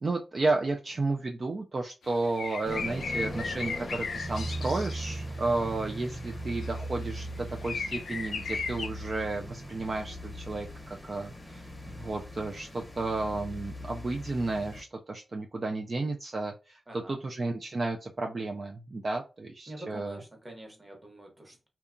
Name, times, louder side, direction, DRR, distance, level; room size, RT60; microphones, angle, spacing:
voice 1, 0.0-16.8 17.1-20.2, right 3 dB, 45° right, 0.3 m, -32 dB
sound 1, 2.2-5.1 6.6-7.1 7.6-8.9, left 5 dB, 75° left, 0.4 m, -36 dB
sound 2, 2.6-14.8, equal, 20° left, 0.7 m, -39 dB
voice 2, 16.9-17.2 19.7-21.7, right 1 dB, 20° right, 0.9 m, -46 dB
2.8 x 2.2 x 2.5 m
cardioid pair, 85°, 0 cm